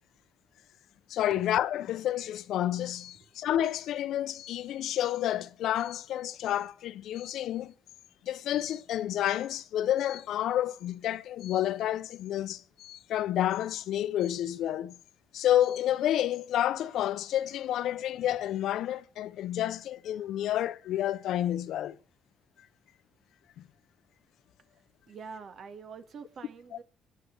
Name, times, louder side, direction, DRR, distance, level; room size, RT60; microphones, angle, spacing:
voice 1, 1.1-7.7 8.2-15.0 15.3-22.0 23.6-23.7 26.7-26.8, left 12 dB, 80° left, 0.7 m, -30 dB
voice 2, 25.1-26.8, right 5 dB, 60° right, 2.0 m, -45 dB
23.0 x 10.5 x 3.5 m
cardioid pair, 90°, 0 cm